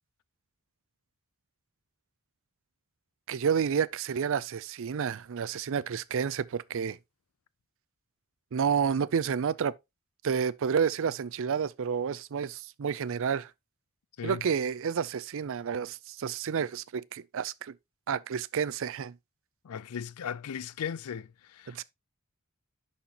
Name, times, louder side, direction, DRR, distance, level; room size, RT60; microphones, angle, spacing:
voice 1, 3.3-7.0 8.5-9.7 10.2-13.5 14.2-17.7 18.1-19.1 21.7-21.8, right 7 dB, 60° right, 0.4 m, -30 dB
voice 2, 19.6-21.8, left 8 dB, 80° left, 0.4 m, -37 dB
11.0 x 4.3 x 2.9 m
head